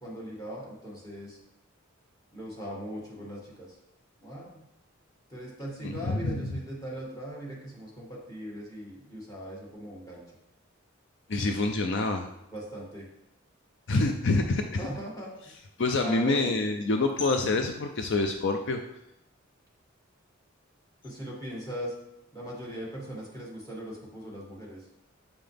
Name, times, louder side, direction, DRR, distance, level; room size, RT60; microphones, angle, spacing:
voice 1, 0.0-1.4 2.3-3.8 4.2-4.6 5.3-10.2 12.5-13.1 14.8-15.3 16.0-16.5 21.0-21.9 22.3-24.9, equal, 20° left, -3 dB, 2.0 m, -39 dB
voice 2, 5.8-6.5 11.3-12.3 13.9-14.8 15.8-18.8, left 3 dB, 60° left, 5 dB, 0.5 m, -26 dB
7.2 x 5.7 x 3.4 m, 0.85 s
head